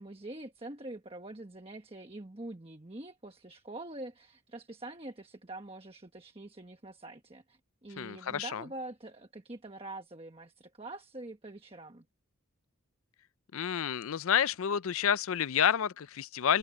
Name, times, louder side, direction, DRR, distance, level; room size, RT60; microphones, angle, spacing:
voice 1, 0.0-12.0, right 2 dB, 25° right, 1.2 m, -45 dB
voice 2, 8.0-8.6 13.5-16.6, left 8 dB, 70° left, 0.5 m, -29 dB
head